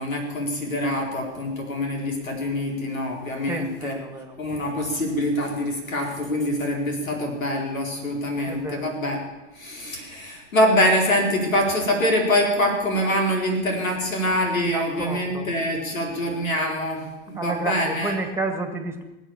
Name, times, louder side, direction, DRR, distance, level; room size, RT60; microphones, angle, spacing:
voice 1, 0.0-4.0 4.4-9.2 9.5-18.1, left 1 dB, 90° left, 1 dB, 4.3 m, -24 dB
voice 2, 3.5-4.4 8.5-8.9 14.7-15.5 17.4-19.0, right 2 dB, 5° right, 6 dB, 2.0 m, -30 dB
20.0 x 8.2 x 7.2 m, 1.1 s
hypercardioid pair, 105°, 39 cm